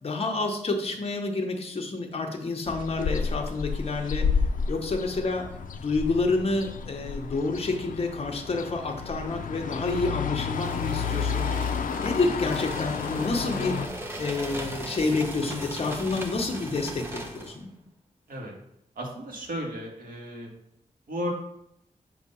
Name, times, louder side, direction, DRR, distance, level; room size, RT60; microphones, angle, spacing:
voice 1, 0.0-4.3 4.7-5.5 5.8-11.5 12.0-13.9 14.2-17.7, left 3 dB, 45° left, 2 dB, 0.9 m, -29 dB
sound 1, 2.7-13.9, left 6 dB, 75° left, 0.4 m, -31 dB
sound 2, 10.5-17.6, equal, 15° right, 0.8 m, -38 dB
voice 2, 19.0-20.5 21.1-21.3, equal, 85° right, -1 dB, 1.6 m, -34 dB
7.4 x 2.8 x 5.4 m, 0.77 s
wide cardioid pair, 170°, 14 cm